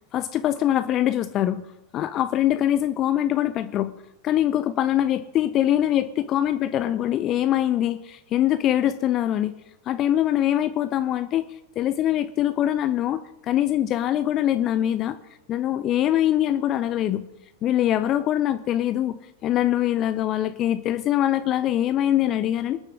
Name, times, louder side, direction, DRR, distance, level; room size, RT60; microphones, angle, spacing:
voice 1, 0.1-1.6 1.9-3.9 4.2-9.5 9.9-15.2 15.5-17.2 17.6-22.8, left 12 dB, 35° left, 11 dB, 0.6 m, -23 dB
26.5 x 9.8 x 3.7 m, 0.95 s
figure-of-eight pair, 90°, 0 cm